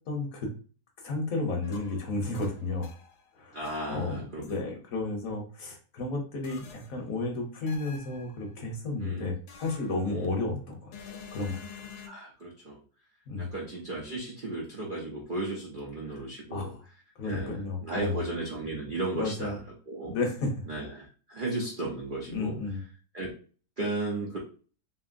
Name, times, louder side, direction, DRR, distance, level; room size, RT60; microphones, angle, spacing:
voice 1, 0.1-0.5 1.0-2.9 3.4-3.6 3.9-11.6 13.3-13.5 16.1-16.2 16.5-16.8 17.2-18.2 19.1-19.6 20.1-20.6 22.3-22.8, left 3 dB, 65° left, 1 dB, 1.0 m, -32 dB
sound 1, 1.6-3.3 3.7-4.6 6.4-7.1 7.7-8.5 9.5-10.4 10.9-12.1, left 6 dB, 80° left, 1.2 m, -48 dB
voice 2, 3.5-4.4 9.0-9.3 10.1-10.3 12.0-12.8 13.4-16.7 17.2-19.6 19.9-20.1 20.7-22.5 23.1-23.3 23.8-24.4, right 2 dB, 85° right, -3 dB, 0.4 m, -35 dB
3.0 x 2.7 x 2.4 m, 0.39 s
omnidirectional pair, 1.8 m